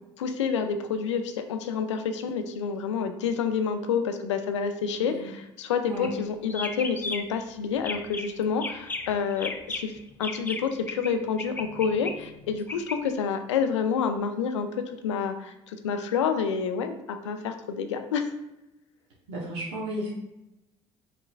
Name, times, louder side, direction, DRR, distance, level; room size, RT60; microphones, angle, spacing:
voice 1, 0.2-9.9 10.2-18.3, left 6 dB, 85° left, 8 dB, 0.4 m, -28 dB
sound 1, 5.9-6.2 6.5-7.4 7.8-8.3 8.6-11.1 11.4-13.0, left 3 dB, 15° left, 0.5 m, -35 dB
voice 2, 19.3-20.1, equal, 75° right, -4 dB, 1.0 m, -33 dB
5.5 x 3.7 x 2.4 m, 0.91 s
hypercardioid pair, 60°, 15 cm